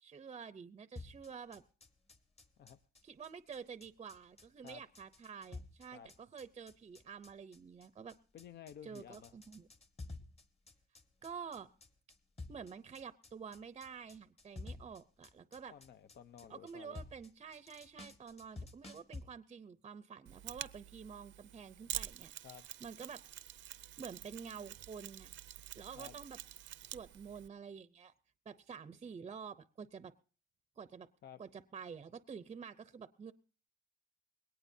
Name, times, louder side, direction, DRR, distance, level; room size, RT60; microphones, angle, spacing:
voice 1, 0.0-1.6 3.0-8.1 8.8-9.7 11.2-11.7 12.5-15.7 16.5-22.3 22.8-23.2 24.0-25.3 25.7-26.4 26.8-28.1 28.5-30.1 30.8-31.1 31.4-33.3, right 6 dB, 30° right, 13 dB, 0.6 m, -49 dB
sound 1, 1.0-19.2, left 3 dB, 30° left, 1.6 m, -52 dB
voice 2, 8.3-9.3 15.7-17.0 22.4-22.7 26.0-26.1 31.2-31.4, left 9 dB, 55° left, 11 dB, 0.7 m, -53 dB
Mechanisms, 20.3-27.5, right 12 dB, 70° right, 0.6 m, -47 dB
21.0 x 18.0 x 2.7 m, 0.38 s
cardioid pair, 120°, 20 cm